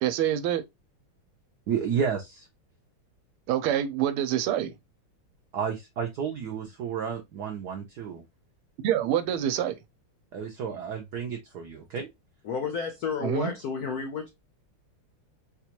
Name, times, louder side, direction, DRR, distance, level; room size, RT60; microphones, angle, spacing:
voice 1, 0.0-0.6 3.5-4.7 8.8-9.8 13.2-13.5, right 11 dB, 90° right, 1.5 m, -26 dB
voice 2, 1.7-2.5 5.5-8.2 10.3-12.1, right 7 dB, 70° right, 0.9 m, -31 dB
voice 3, 12.4-14.3, left 5 dB, 75° left, 0.8 m, -31 dB
4.1 x 2.3 x 2.8 m
omnidirectional pair, 2.4 m